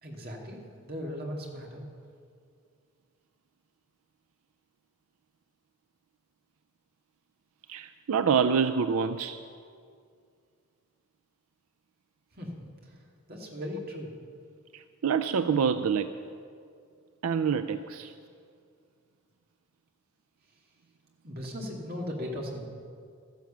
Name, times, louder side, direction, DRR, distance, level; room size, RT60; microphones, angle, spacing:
voice 1, 0.0-1.8 12.3-13.0 13.3-14.2 21.2-22.7, equal, 45° right, -1 dB, 2.3 m, -38 dB
voice 2, 7.7-9.4 14.7-16.1 17.2-18.1, right 6 dB, 80° right, 10 dB, 0.4 m, -26 dB
13.5 x 10.5 x 7.3 m, 2.3 s
head